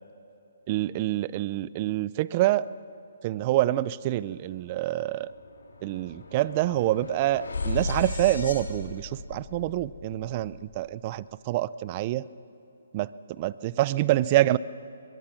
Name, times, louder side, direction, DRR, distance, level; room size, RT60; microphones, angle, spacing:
voice 1, 0.7-2.7 3.2-5.3 5.8-12.3 12.9-14.6, right 15 dB, 30° right, 19 dB, 0.5 m, -26 dB
sound 1, 4.4-4.5 4.8-11.1, left 3 dB, 80° left, 2.8 m, -36 dB
22.5 x 21.5 x 6.0 m, 2.9 s
hypercardioid pair, 150°, 0 cm